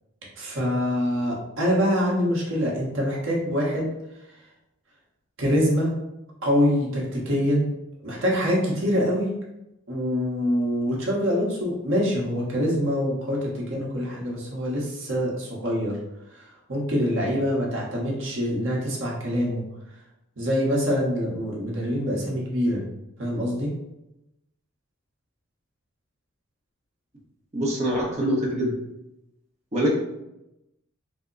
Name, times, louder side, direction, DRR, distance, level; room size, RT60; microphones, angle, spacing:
voice 1, 0.4-3.9 5.4-5.9 6.4-7.7 8.0-9.3 9.9-16.0 16.3-19.6 20.4-22.8 23.2-23.7, equal, 60° right, -3 dB, 1.0 m, -25 dB
voice 2, 27.5-28.7 29.7-29.9, equal, 30° right, -3 dB, 0.8 m, -24 dB
3.4 x 2.1 x 3.8 m, 0.91 s
head